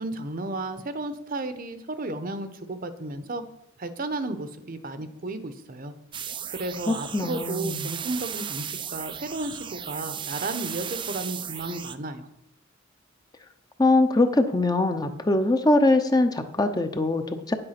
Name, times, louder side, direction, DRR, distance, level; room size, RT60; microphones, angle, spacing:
voice 1, 0.0-3.4 3.8-5.9 6.5-12.3, right 2 dB, 45° right, 10 dB, 0.9 m, -33 dB
sound 1, 6.1-12.0, right 8 dB, 25° right, 0.4 m, -35 dB
voice 2, 6.9-7.9 13.8-17.5, left 2 dB, 20° left, 8 dB, 0.7 m, -22 dB
9.6 x 7.8 x 5.8 m, 0.80 s
head